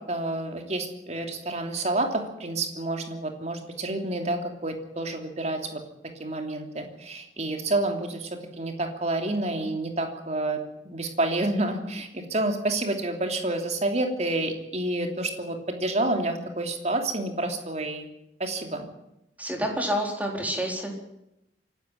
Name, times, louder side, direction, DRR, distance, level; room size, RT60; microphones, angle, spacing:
voice 1, 0.1-5.8 6.2-8.3 8.6-18.1 18.4-18.9, right 2 dB, 40° right, 5 dB, 3.0 m, -29 dB
voice 2, 19.4-20.9, equal, 10° right, 2 dB, 4.1 m, -28 dB
25.5 x 12.0 x 9.4 m, 0.85 s
head